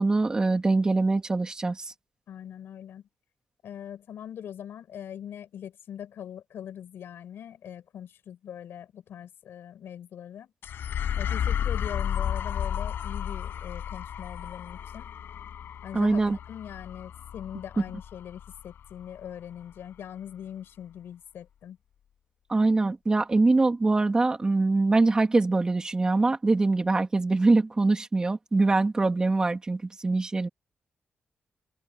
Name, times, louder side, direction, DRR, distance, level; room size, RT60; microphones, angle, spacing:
voice 1, 0.0-1.8 15.9-16.4 22.5-30.5, right 3 dB, 20° right, 3.3 m, -23 dB
voice 2, 2.3-3.1 3.6-10.5 11.1-15.1 15.8-21.8, left 9 dB, 90° left, 6.7 m, -41 dB
sound 1, 10.6-19.3, left 9 dB, 75° left, 7.2 m, -33 dB
wide cardioid pair, 170°, 4 cm